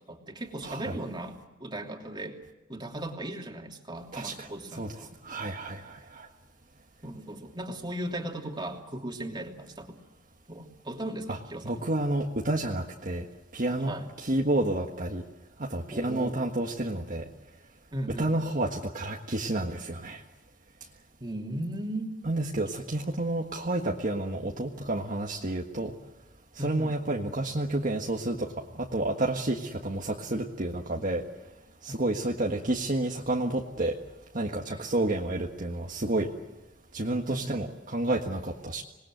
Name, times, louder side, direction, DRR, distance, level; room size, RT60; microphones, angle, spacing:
voice 1, 0.1-2.4 2.7-5.1 7.0-10.0 10.5-11.8 13.9-14.1 15.9-16.4 17.9-18.3 21.2-22.2 26.6-27.0 34.7-34.8 37.3-37.6, right 1 dB, 25° right, 2 dB, 3.0 m, -37 dB
voice 2, 0.6-1.0 4.1-6.3 11.3-11.4 11.6-13.3 13.5-15.2 15.6-17.3 18.1-20.2 22.2-25.9 26.5-31.3 31.8-34.0 34.3-36.3 36.9-38.8, right 1 dB, 45° right, 0 dB, 1.7 m, -30 dB
27.0 x 20.5 x 7.8 m, 1.1 s
head